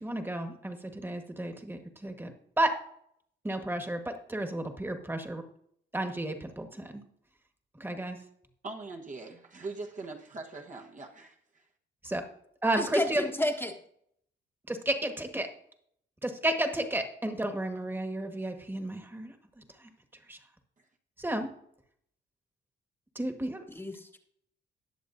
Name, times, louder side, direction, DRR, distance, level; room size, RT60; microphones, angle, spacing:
voice 1, 0.0-2.8 3.4-5.4 5.9-7.0 7.8-8.2 12.0-12.2 12.6-13.2 14.7-15.5 16.2-19.3 20.3-20.4 21.2-21.5 23.1-23.6, right 1 dB, 10° right, 6 dB, 1.5 m, -32 dB
voice 2, 8.6-11.7 20.8-20.9, right 3 dB, 40° right, 1 dB, 1.2 m, -42 dB
voice 3, 12.8-13.7 23.7-24.2, left 1 dB, 10° left, 2 dB, 1.2 m, -31 dB
19.5 x 6.9 x 2.7 m, 0.69 s
cardioid pair, 90°, 20 cm